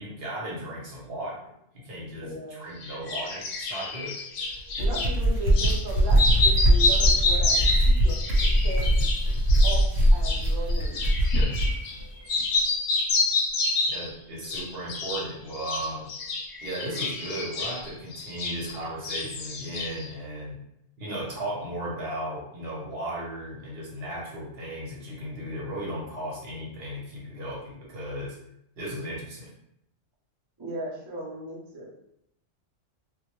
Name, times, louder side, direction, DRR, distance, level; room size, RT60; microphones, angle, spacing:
voice 1, 0.0-1.4 1.7-4.5 11.3-11.6 13.9-16.1 16.6-20.6 21.0-28.4 28.8-29.5, right 1 dB, 55° right, -4 dB, 0.9 m, -36 dB
voice 2, 2.2-2.7 4.8-7.5 8.0-8.9 9.6-11.0 30.6-31.9, right 1 dB, 40° right, -5 dB, 0.4 m, -36 dB
sound 1, 2.8-5.1 5.5-5.8 6.1-12.0 12.3-14.1 14.4-15.2 15.5-18.8 19.0-20.1, left 3 dB, 65° left, 0.8 m, -28 dB
sound 2, 4.6-11.8, equal, 80° right, 1.0 m, -22 dB
2.2 x 2.0 x 2.9 m, 0.76 s
omnidirectional pair, 1.3 m